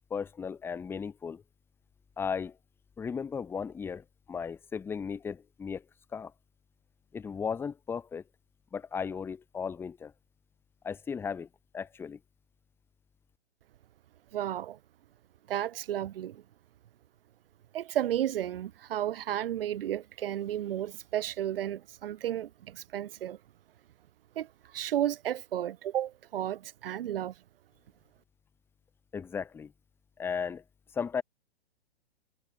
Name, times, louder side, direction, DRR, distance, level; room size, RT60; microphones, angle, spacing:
voice 1, 0.1-1.4 2.2-2.6 3.0-5.8 6.1-6.3 7.1-8.2 8.7-10.1 10.8-11.5 11.7-12.2 29.1-29.7 30.2-30.6 30.9-31.2, left 6 dB, 5° left, 0.7 m, -35 dB
voice 2, 14.3-14.8 15.5-16.4 17.7-23.4 24.4-27.3, right 11 dB, 60° right, 0.5 m, -33 dB
figure-of-eight pair, 110°, 33 cm